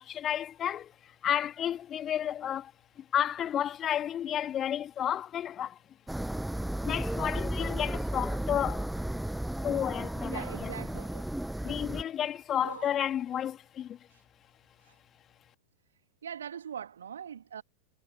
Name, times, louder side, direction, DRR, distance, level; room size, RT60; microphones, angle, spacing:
voice 1, 0.0-2.7 3.0-5.8 6.8-8.9 9.6-10.7 11.6-14.0, left 10 dB, 25° left, 2.4 m, -32 dB
sound 1, 6.1-12.0, right 1 dB, 5° right, 8.0 m, -34 dB
voice 2, 10.3-11.2 12.6-12.9 14.1-14.2 16.2-17.6, right 8 dB, 65° right, 2.0 m, -41 dB
figure-of-eight pair, 90°, 0 cm